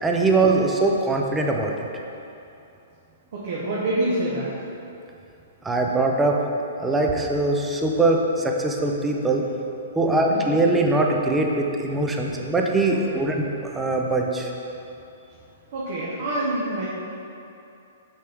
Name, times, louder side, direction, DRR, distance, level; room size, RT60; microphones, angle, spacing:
voice 1, 0.0-1.7 5.6-6.4 6.8-9.4 10.0-13.5 13.7-14.5, right 2 dB, 10° right, 1 dB, 0.5 m, -22 dB
voice 2, 3.3-4.5 10.0-10.4 12.9-13.3 15.7-16.9, right 1 dB, 55° right, -7 dB, 1.2 m, -27 dB
6.4 x 5.8 x 3.5 m, 2.8 s
hypercardioid pair, 155°, 0 cm